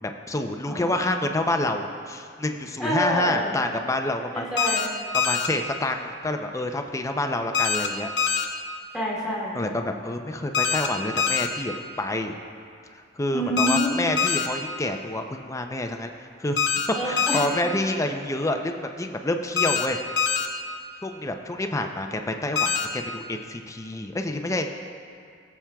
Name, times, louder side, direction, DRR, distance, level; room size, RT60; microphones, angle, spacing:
voice 1, 0.0-4.5 5.1-8.5 9.5-12.3 12.9-16.6 17.0-20.0 21.0-24.7, left 2 dB, 15° left, 5 dB, 0.5 m, -28 dB
voice 2, 0.6-1.3 2.8-3.6 4.3-4.9 8.9-9.6 13.3-14.0 16.9-17.5, equal, 5° right, -7 dB, 2.7 m, -27 dB
sound 1, 4.6-4.9 5.1-5.5 7.5-7.9 8.2-8.5 10.5-10.9 11.2-11.5 13.6-13.9 14.2-14.5 16.6-16.9 17.2-17.5 19.6-19.9 20.2-20.5 22.6-22.9, left 6 dB, 65° left, 0.8 m, -23 dB
19.5 x 7.2 x 2.3 m, 2.2 s
head